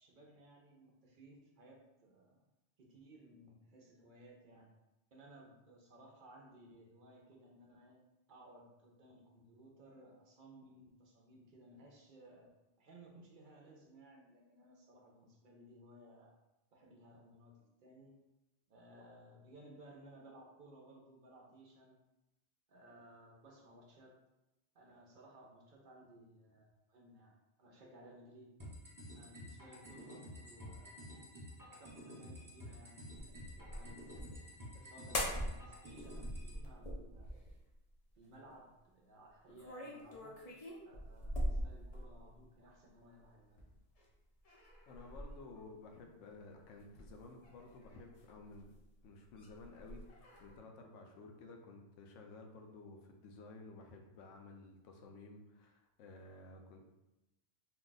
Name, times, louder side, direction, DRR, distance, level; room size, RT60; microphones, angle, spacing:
voice 1, 0.0-2.4 2.8-4.7 5.1-8.0 8.3-12.5 12.8-16.4 16.7-18.2 18.7-22.0 22.7-24.2 24.7-28.5 29.1-31.0 31.6-34.3 34.7-37.4 38.2-40.4 40.8-43.6, right 1 dB, 60° right, -1 dB, 0.5 m, -59 dB
sound 1, 28.6-36.6, equal, 20° right, 0.7 m, -51 dB
sound 2, 33.2-34.5 35.1-35.7 35.9-37.7 39.5-42.4 43.6-44.0 44.4-45.6 46.8-48.7 49.0-50.6, equal, 55° left, 0.4 m, -43 dB
voice 2, 44.9-48.7 49.0-56.8, left 3 dB, 75° left, 2 dB, 0.9 m, -54 dB
2.6 x 2.2 x 3.8 m, 0.95 s
omnidirectional pair, 1.3 m